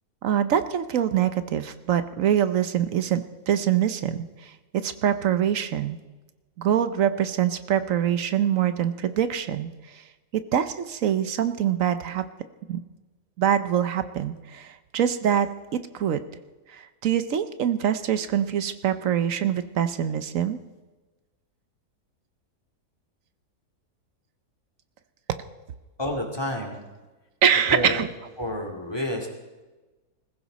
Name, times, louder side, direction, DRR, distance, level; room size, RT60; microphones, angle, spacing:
voice 1, 0.2-4.5 4.8-6.0 6.6-10.0 10.3-12.2 12.7-12.8 13.4-15.5 15.7-16.2 16.7-20.6 27.4-28.1, right 9 dB, 60° right, 12 dB, 1.0 m, -24 dB
voice 2, 26.0-26.8 27.7-28.1 28.4-29.3, left 1 dB, 15° left, 2 dB, 2.6 m, -29 dB
20.5 x 15.0 x 4.1 m, 1.2 s
omnidirectional pair, 1.7 m